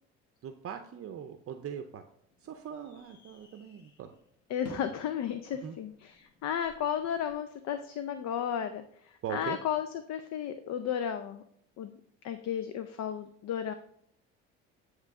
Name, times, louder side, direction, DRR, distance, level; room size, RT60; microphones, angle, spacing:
voice 1, 0.4-2.0 2.4-4.1 5.6-5.7 9.2-9.6, right 8 dB, 45° right, 7 dB, 0.6 m, -40 dB
sound 1, 2.1-7.3, left 4 dB, 85° left, 1.2 m, -54 dB
voice 2, 4.5-11.4 11.8-12.0 12.2-13.7, left 9 dB, 55° left, 10 dB, 0.6 m, -34 dB
9.4 x 3.2 x 3.6 m, 0.68 s
hypercardioid pair, 70°, 33 cm